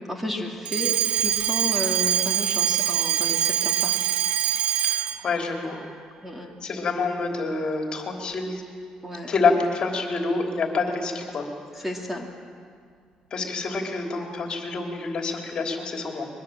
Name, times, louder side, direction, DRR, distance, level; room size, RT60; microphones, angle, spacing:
voice 1, 0.1-3.9 6.2-6.5 9.0-9.3 11.8-12.3, left 1 dB, 10° right, 1 dB, 2.6 m, -32 dB
Alarm, 0.6-5.3, right 10 dB, 70° right, 0.9 m, -24 dB
voice 2, 4.8-5.8 6.4-8.6 9.3-11.5 11.7-11.8 13.3-16.3, left 4 dB, 45° left, 2 dB, 3.4 m, -27 dB
22.5 x 21.5 x 7.6 m, 2.1 s
cardioid pair, 120°, 2 cm